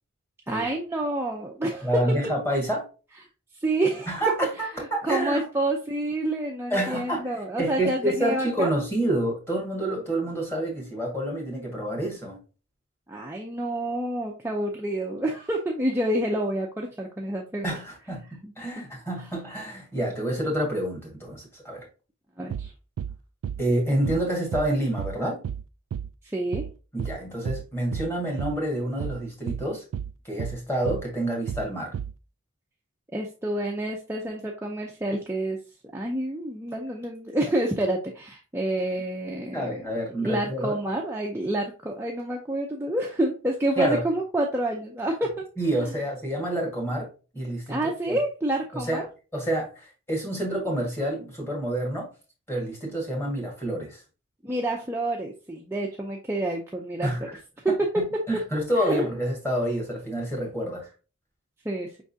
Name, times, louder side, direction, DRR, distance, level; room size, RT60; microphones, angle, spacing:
voice 1, 0.5-2.0 3.6-4.1 4.7-8.7 13.1-17.7 18.4-18.5 22.4-22.7 26.3-26.7 33.1-35.6 35.9-39.8 40.2-45.5 47.7-49.1 54.4-57.1 57.6-58.0 58.8-59.0 61.6-61.9, right 1 dB, 10° right, -1 dB, 0.5 m, -28 dB
voice 2, 1.8-2.8 4.1-5.5 6.7-12.4 17.6-21.8 23.6-25.4 26.9-29.8 30.2-31.9 39.5-40.8 43.8-44.0 45.6-47.1 47.3-48.2 48.7-49.0 49.3-52.1 52.5-54.0 57.0-57.4 57.9-60.8, right 1 dB, 10° left, -1 dB, 1.6 m, -28 dB
sound 1, 22.5-22.7 23.0-23.2 23.4-23.6 24.1-24.3 24.5-24.7 25.0-25.2 25.4-25.6 25.9-26.1 26.5-26.7 27.0-27.2 27.5-27.7 27.9-28.1 28.4-28.6 29.0-29.2 29.5-29.7 29.9-30.1 30.4-30.6 30.9-31.1 31.5-31.7 31.9-32.1, right 8 dB, 80° right, 0.3 m, -32 dB
5.2 x 3.6 x 2.6 m, 0.33 s
head